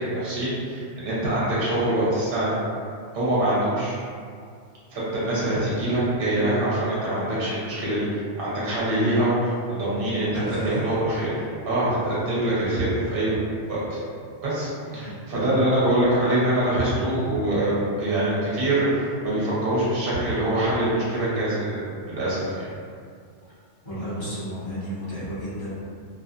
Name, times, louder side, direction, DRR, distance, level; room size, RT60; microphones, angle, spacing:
voice 1, 0.0-2.6 3.1-4.0 4.9-8.1 8.4-13.4 13.7-14.0 14.4-21.8 22.1-22.7, right 1 dB, 55° right, -8 dB, 0.9 m, -24 dB
voice 2, 10.2-10.9 14.8-15.2 23.8-25.7, right 1 dB, 45° left, -13 dB, 1.4 m, -32 dB
2.5 x 2.5 x 2.3 m, 2.3 s
omnidirectional pair, 1.3 m